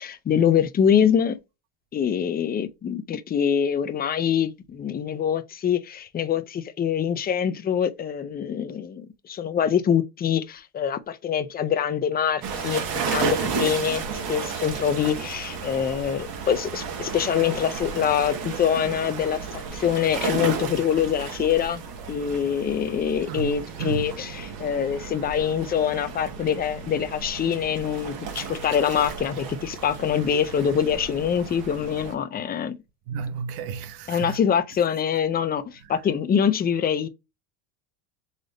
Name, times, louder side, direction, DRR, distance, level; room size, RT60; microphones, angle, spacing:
voice 1, 0.0-1.4 1.9-14.0 14.3-21.8 22.1-32.8 34.1-37.1, left 8 dB, 20° left, 0.4 m, -24 dB
sound 1, 12.4-32.1, right 6 dB, 55° right, 1.6 m, -33 dB
voice 2, 23.3-24.1 33.1-34.4, right 6 dB, 80° right, 0.9 m, -32 dB
4.0 x 3.3 x 3.8 m
cardioid pair, 125°, 43 cm